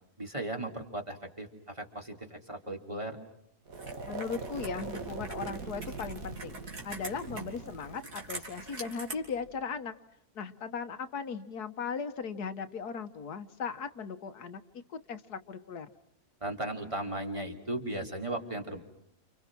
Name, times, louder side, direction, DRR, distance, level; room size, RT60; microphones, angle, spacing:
voice 1, 0.2-3.2 16.4-18.8, right 1 dB, 20° right, 2 dB, 3.0 m, -36 dB
sound 1, 3.7-9.6, right 4 dB, 65° right, 2.3 m, -42 dB
Computer keyboard, 3.7-9.2, right 2 dB, 80° right, 4.3 m, -45 dB
voice 2, 4.0-9.9 10.4-14.6 14.9-15.9, left 6 dB, 80° left, 9 dB, 1.8 m, -38 dB
29.5 x 29.0 x 6.1 m, 0.75 s
omnidirectional pair, 1.7 m